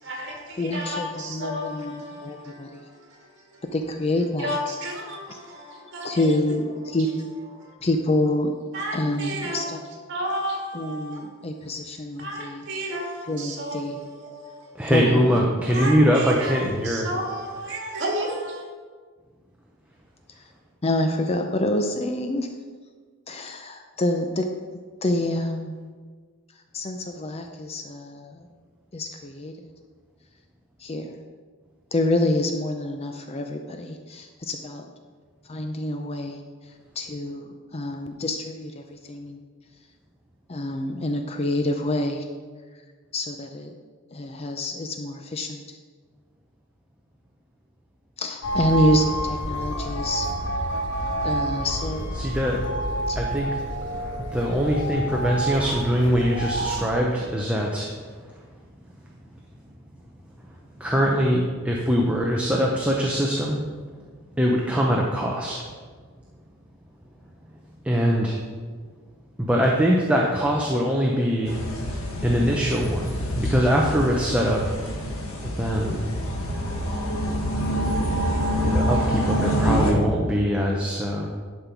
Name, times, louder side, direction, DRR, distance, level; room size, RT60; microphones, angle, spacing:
voice 1, 0.0-3.6 4.4-6.3 7.6-7.7 8.7-9.8 10.1-11.2 12.2-14.7 15.7-18.6, equal, 55° right, 2.0 m, -33 dB
voice 2, 0.6-2.8 3.7-4.6 6.0-7.1 7.8-8.5 8.9-9.8 10.7-12.6 13.3-14.0 14.9-15.3 20.8-22.5 23.3-24.5 25.0-25.8 26.7-28.5 28.9-29.5 30.8-31.1 31.9-34.9 35.5-36.4 37.0-39.4 40.5-42.3 43.1-43.7 44.1-45.8 48.2-50.3 51.2-52.1 53.1-53.2, left 1 dB, 30° left, 0.5 m, -27 dB
voice 3, 14.7-17.1 52.2-52.6 53.2-53.5 54.3-57.9 60.8-63.6 64.4-65.7 67.8-68.4 69.4-71.6 72.2-74.7 75.4-76.1 78.6-81.3, equal, 5° right, 0.7 m, -22 dB
sound 1, 48.4-56.9, right 1 dB, 55° left, 1.3 m, -28 dB
sound 2, 71.5-79.9, equal, 80° left, 1.7 m, -26 dB
11.0 x 5.3 x 4.5 m
head